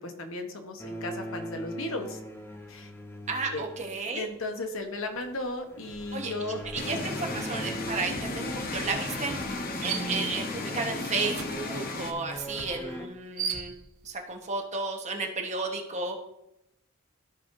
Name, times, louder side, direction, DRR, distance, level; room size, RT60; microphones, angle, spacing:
voice 1, 0.0-2.2 2.7-2.9 3.5-3.7 4.1-6.6, left 2 dB, 65° left, 4 dB, 1.1 m, -35 dB
sound 1, 0.8-4.4 5.7-13.1, equal, 10° left, 0.8 m, -41 dB
voice 2, 3.3-4.2 6.1-13.7 14.0-16.2, right 3 dB, 35° right, 1 dB, 1.2 m, -33 dB
sound 2, 5.1-5.4 5.7-14.2, right 7 dB, 75° right, 0.9 m, -41 dB
sound 3, 6.7-12.1, left 3 dB, 45° left, 0.8 m, -34 dB
14.0 x 5.7 x 2.6 m, 0.83 s
head